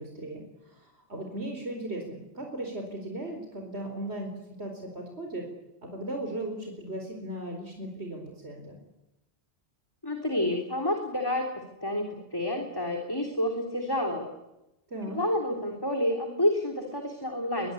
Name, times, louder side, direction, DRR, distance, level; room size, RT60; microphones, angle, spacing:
voice 1, 0.0-5.5 5.8-8.8 14.9-15.2, right 1 dB, 70° right, 3 dB, 4.6 m, -37 dB
voice 2, 10.0-14.3 15.1-17.7, left 1 dB, 20° left, 2 dB, 3.5 m, -29 dB
22.5 x 22.0 x 9.8 m, 0.92 s
omnidirectional pair, 1.2 m